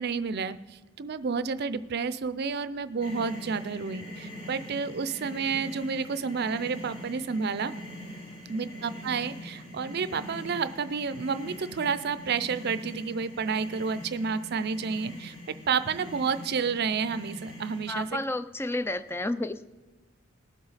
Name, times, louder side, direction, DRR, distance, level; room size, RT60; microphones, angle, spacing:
voice 1, 0.0-7.7 8.5-15.3 15.7-18.2, right 5 dB, 55° right, 14 dB, 0.5 m, -30 dB
sound 1, 3.0-18.1, equal, 80° left, 4.9 m, -43 dB
voice 2, 17.9-19.6, left 2 dB, 10° left, 13 dB, 0.4 m, -31 dB
19.5 x 7.8 x 4.1 m, 1.2 s
head